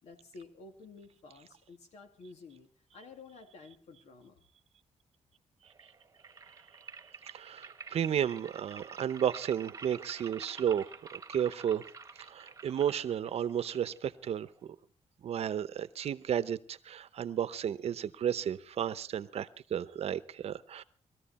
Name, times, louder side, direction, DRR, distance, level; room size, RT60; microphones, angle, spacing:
voice 1, 0.0-4.4, left 3 dB, 80° left, 6 dB, 2.4 m, -52 dB
sound 1, 5.7-14.7, right 5 dB, 25° right, 1.2 m, -49 dB
voice 2, 7.2-11.8 12.2-14.8 15.2-20.8, right 9 dB, 65° right, 15 dB, 0.8 m, -33 dB
20.5 x 14.0 x 4.2 m, 0.43 s
cardioid pair, 115°, 11 cm